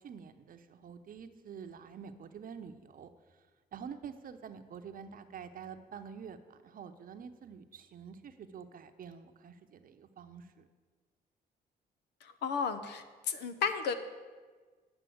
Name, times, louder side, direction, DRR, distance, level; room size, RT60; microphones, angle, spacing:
voice 1, 0.0-3.1 3.7-10.7, right 7 dB, 55° right, 8 dB, 0.8 m, -47 dB
voice 2, 12.2-13.9, left 6 dB, 80° left, 10 dB, 0.9 m, -33 dB
9.2 x 6.1 x 7.8 m, 1.4 s
cardioid pair, 85°, 17 cm